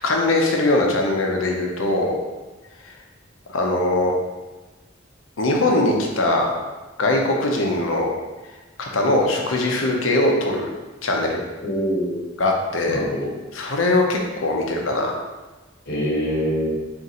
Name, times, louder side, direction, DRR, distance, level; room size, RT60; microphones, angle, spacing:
voice 1, 0.0-2.2 3.5-4.1 5.4-6.5 7.0-8.1 8.8-10.7 11.0-11.4 12.4-13.0 13.5-15.1, left 2 dB, 90° left, 1 dB, 0.7 m, -21 dB
voice 2, 11.6-12.2 12.9-13.3 15.8-16.8, equal, 60° left, -4 dB, 1.2 m, -24 dB
3.8 x 2.6 x 4.1 m, 1.2 s
head